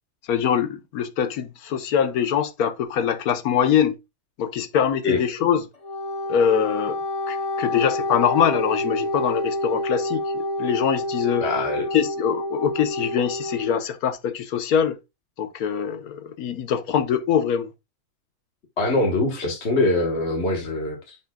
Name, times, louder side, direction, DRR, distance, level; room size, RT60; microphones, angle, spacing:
voice 1, 0.3-4.0 4.4-5.6 6.3-7.0 7.3-11.4 11.9-15.0 15.4-17.7, left 8 dB, 75° left, 1.4 m, -23 dB
Wind instrument woodwind instrument, 5.7-13.8, left 1 dB, 30° left, 0.9 m, -28 dB
voice 2, 11.4-11.8 18.8-21.2, left 2 dB, 45° left, 1.6 m, -23 dB
10.0 x 5.4 x 2.3 m
omnidirectional pair, 1.6 m